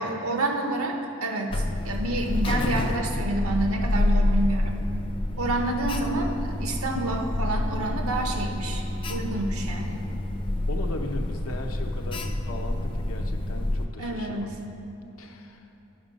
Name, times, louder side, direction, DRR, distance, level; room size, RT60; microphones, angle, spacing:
voice 1, 0.0-4.7 5.4-8.8 9.1-10.1 14.0-14.5, right 2 dB, 85° right, 3 dB, 0.9 m, -28 dB
Alarm, 1.5-13.9, left 1 dB, 25° left, 0.3 m, -28 dB
voice 2, 10.7-14.6 15.2-15.7, left 1 dB, 85° left, 4 dB, 0.7 m, -37 dB
10.0 x 5.4 x 5.2 m, 2.9 s
head